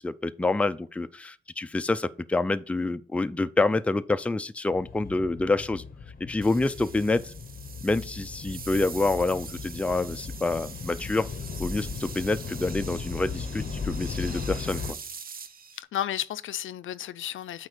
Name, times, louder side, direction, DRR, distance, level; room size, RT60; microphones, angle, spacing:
voice 1, 0.0-5.8 6.2-7.3 7.8-11.3 11.6-15.0, left 2 dB, 5° left, 0.4 m, -27 dB
sound 1, 4.7-14.9, left 5 dB, 45° left, 0.7 m, -37 dB
sound 2, 6.4-15.8, right 6 dB, 45° right, 0.7 m, -43 dB
voice 2, 15.8-17.7, left 11 dB, 75° left, 0.5 m, -33 dB
8.2 x 4.4 x 5.0 m
cardioid pair, 100°, 21 cm